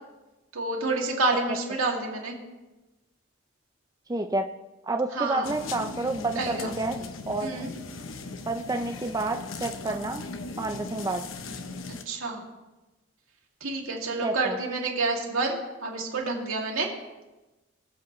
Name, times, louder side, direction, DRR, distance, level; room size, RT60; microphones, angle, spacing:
voice 1, 0.5-2.4 5.1-5.5 6.3-6.7 7.4-7.7 9.9-10.0 12.1-12.4 13.6-16.9, right 3 dB, 85° right, -1 dB, 2.5 m, -29 dB
voice 2, 4.1-4.5 4.8-7.0 7.3-7.6 8.5-10.3 10.6-11.2 14.2-14.6, right 2 dB, 15° right, 5 dB, 0.4 m, -29 dB
sound 1, 5.4-12.0, left 3 dB, 70° left, 0.8 m, -38 dB
23.0 x 8.1 x 3.1 m, 1.1 s
head